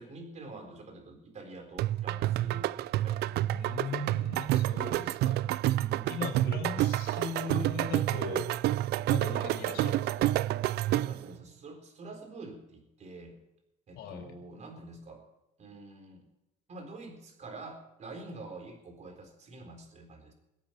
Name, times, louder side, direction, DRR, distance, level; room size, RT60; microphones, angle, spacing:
voice 1, 0.0-3.5 4.1-4.2 5.7-6.1 10.9-13.4 13.9-15.2 15.6-16.2 16.7-20.3, right 2 dB, 45° right, 4 dB, 4.0 m, -47 dB
sound 1, 1.8-11.3, right 14 dB, 75° right, 0.5 m, -29 dB
voice 2, 3.5-5.5 6.1-8.5 9.1-10.4 14.0-14.4, left 4 dB, 80° left, 4 dB, 4.2 m, -38 dB
22.0 x 8.6 x 5.9 m, 0.88 s
cardioid pair, 110°, 17 cm